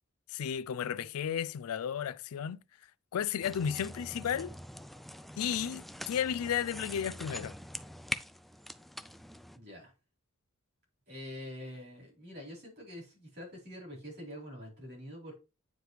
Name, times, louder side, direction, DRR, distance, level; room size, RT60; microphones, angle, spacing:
voice 1, 0.3-2.6 3.1-4.5 5.4-7.5, left 8 dB, 85° left, 0.4 m, -33 dB
sound 1, 3.4-9.6, equal, ahead, 0.3 m, -43 dB
voice 2, 9.5-9.9 11.1-15.3, equal, 55° right, 4.4 m, -45 dB
9.4 x 4.8 x 3.2 m
head